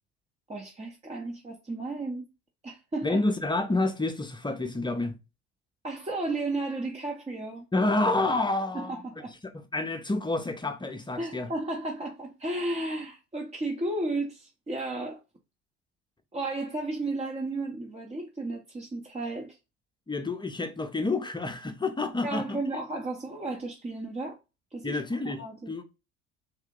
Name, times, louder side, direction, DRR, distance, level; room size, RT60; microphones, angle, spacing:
voice 1, 0.5-2.3 2.6-3.2 5.8-7.6 8.7-9.3 11.2-15.2 16.3-19.6 22.2-24.4 24.7-25.0 25.2-25.7, right 2 dB, 20° right, 0.9 m, -33 dB
voice 2, 3.0-5.1 7.7-9.0 9.7-11.5 20.1-22.6 24.8-25.8, left 2 dB, 15° left, 0.7 m, -28 dB
3.7 x 2.7 x 3.7 m
hypercardioid pair, 60°, 35 cm